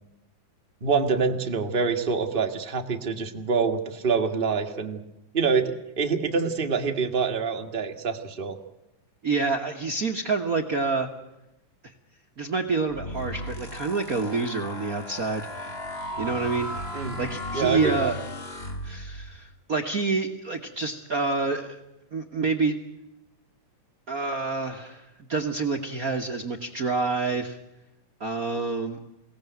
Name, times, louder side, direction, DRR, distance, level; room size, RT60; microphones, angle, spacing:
voice 1, 0.8-5.0 5.3-8.6 16.9-17.2 17.5-18.1, right 5 dB, 30° right, 4 dB, 1.0 m, -26 dB
voice 2, 9.2-11.1 12.4-15.5 16.2-18.1 18.8-21.8 22.1-22.8 24.1-27.6 28.2-29.0, right 4 dB, 60° right, 4 dB, 0.9 m, -28 dB
sound 1, 12.9-19.4, left 1 dB, 30° left, 1.3 m, -35 dB
23.0 x 17.5 x 9.3 m, 0.91 s
omnidirectional pair, 3.6 m